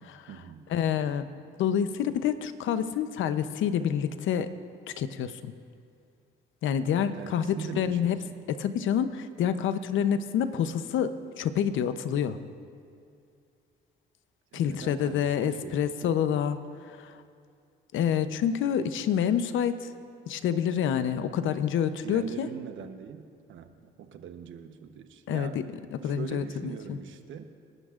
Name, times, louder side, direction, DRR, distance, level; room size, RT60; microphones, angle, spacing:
voice 1, 0.0-0.7 7.1-8.2 14.5-16.2 22.0-25.6 26.0-27.4, right 7 dB, 75° right, 8 dB, 1.0 m, -42 dB
voice 2, 0.7-1.3 1.6-4.5 4.9-5.5 6.6-8.2 8.5-12.4 14.5-17.2 17.9-19.9 20.3-22.5 25.3-25.6 25.9-27.0, left 8 dB, 75° left, 11 dB, 0.7 m, -28 dB
28.5 x 12.0 x 2.5 m, 2.4 s
cardioid pair, 90°, 20 cm